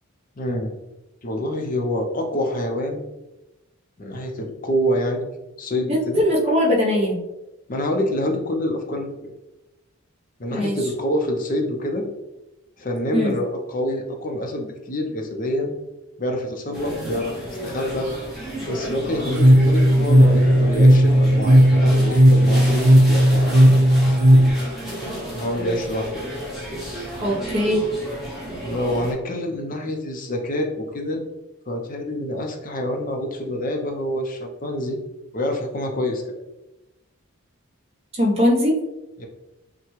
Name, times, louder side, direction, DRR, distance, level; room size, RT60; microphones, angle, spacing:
voice 1, 0.4-0.7 1.2-3.0 4.0-5.3 5.6-6.2 7.7-9.1 10.4-12.1 12.8-15.7 16.2-17.3 17.6-18.1 18.7-23.8 25.3-26.3 28.6-31.2 31.7-35.0 35.3-36.4 39.2-39.3, left 1 dB, 40° left, 2 dB, 0.6 m, -26 dB
voice 2, 5.9-7.2 10.5-10.8 13.1-13.4 27.2-27.8 38.1-38.8, equal, 30° right, -2 dB, 0.8 m, -20 dB
sound 1, 16.7-29.1, equal, ahead, 1.0 m, -32 dB
sound 2, 19.3-24.5, equal, 80° right, 0.7 m, -14 dB
5.7 x 2.2 x 3.1 m, 0.95 s
head